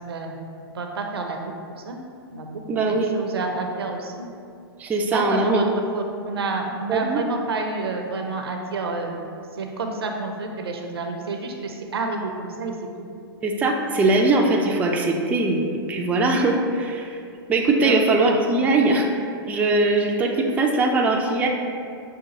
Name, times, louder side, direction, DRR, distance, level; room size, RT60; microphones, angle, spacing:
voice 1, 0.7-1.4 1.9-2.0 2.3-2.6 2.9-4.3 5.1-5.6 5.9-9.1 9.6-12.7 17.8-17.9, right 3 dB, 75° right, 3 dB, 0.5 m, -29 dB
voice 2, 2.7-3.1 4.8-5.6 6.9-7.2 13.4-17.2 17.5-19.1 19.5-21.5, right 2 dB, 10° right, 0 dB, 0.3 m, -21 dB
5.7 x 2.4 x 2.8 m, 2.4 s
figure-of-eight pair, 110°, 13 cm